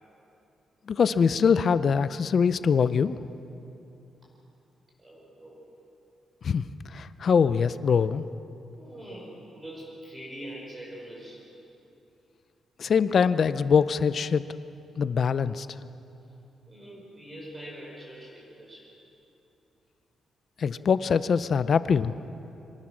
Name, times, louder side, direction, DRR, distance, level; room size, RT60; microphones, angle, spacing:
voice 1, 0.9-3.2 6.4-6.7 6.9-8.2 12.8-14.4 15.0-15.7 20.6-22.1, left 6 dB, 40° left, 14 dB, 0.5 m, -23 dB
voice 2, 5.0-5.6 8.8-11.5 16.7-18.9, right 1 dB, 20° right, -4 dB, 4.8 m, -43 dB
25.0 x 18.5 x 6.3 m, 2.8 s
wide cardioid pair, 175°, 0 cm